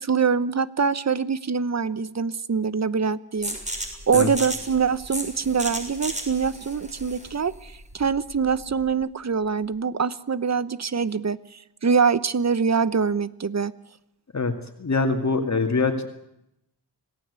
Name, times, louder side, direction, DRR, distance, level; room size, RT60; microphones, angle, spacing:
voice 1, 0.0-11.4 11.8-13.7, right 6 dB, 45° right, 16 dB, 1.0 m, -24 dB
sound 1, 3.4-8.9, right 1 dB, 20° right, 6.7 m, -34 dB
voice 2, 14.8-16.1, left 3 dB, 45° left, 5 dB, 2.4 m, -23 dB
26.5 x 18.5 x 8.3 m, 0.83 s
wide cardioid pair, 100°, 39 cm